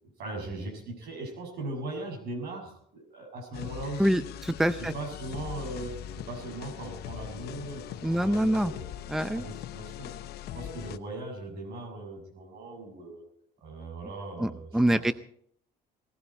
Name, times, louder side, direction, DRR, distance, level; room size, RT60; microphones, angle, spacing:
voice 1, 0.0-4.2 4.9-8.8 9.3-10.1 10.5-13.3 13.6-15.1, right 2 dB, 70° right, 3 dB, 6.5 m, -39 dB
sound 1, 3.5-11.0, left 11 dB, 75° left, 0.9 m, -41 dB
voice 2, 4.0-4.9 8.0-8.7 9.1-9.5 14.4-15.1, right 1 dB, ahead, 13 dB, 0.5 m, -25 dB
18.5 x 15.0 x 4.4 m, 0.63 s
cardioid pair, 110°, 17 cm